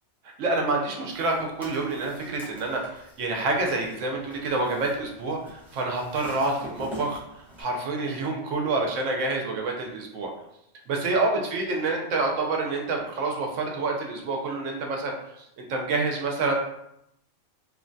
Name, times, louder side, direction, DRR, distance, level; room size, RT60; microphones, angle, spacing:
voice 1, 0.4-10.3 10.9-16.5, right 3 dB, 85° right, 1 dB, 0.9 m, -28 dB
sound 1, 1.1-7.6, equal, ahead, 0.7 m, -45 dB
2.9 x 2.2 x 2.6 m, 0.78 s
omnidirectional pair, 1.3 m